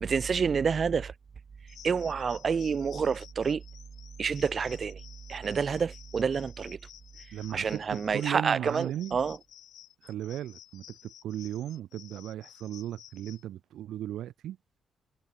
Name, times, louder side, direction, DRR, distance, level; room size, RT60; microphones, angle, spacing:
voice 1, 0.0-1.1 1.8-3.6 4.2-5.0 5.3-6.8 7.5-9.4, right 6 dB, 40° right, 0.7 m, -28 dB
sound 1, 1.7-13.4, left 11 dB, 80° left, 4.6 m, -53 dB
voice 2, 7.3-9.2 10.0-14.6, right 12 dB, 85° right, 0.9 m, -36 dB
cardioid pair, 135°, 0 cm